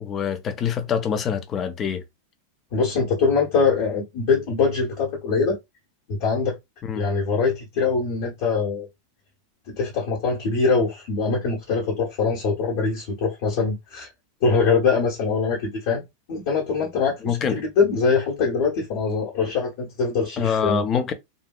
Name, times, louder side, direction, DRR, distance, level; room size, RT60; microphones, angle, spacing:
voice 1, 0.0-2.0 6.8-7.0 17.2-17.6 20.4-21.1, left 7 dB, 25° left, 0.7 m, -25 dB
voice 2, 2.7-5.6 6.1-6.6 6.9-8.9 9.7-14.1 14.4-16.0 16.3-21.1, left 4 dB, 50° left, 1.4 m, -23 dB
3.7 x 2.7 x 2.4 m
figure-of-eight pair, 90°, 0 cm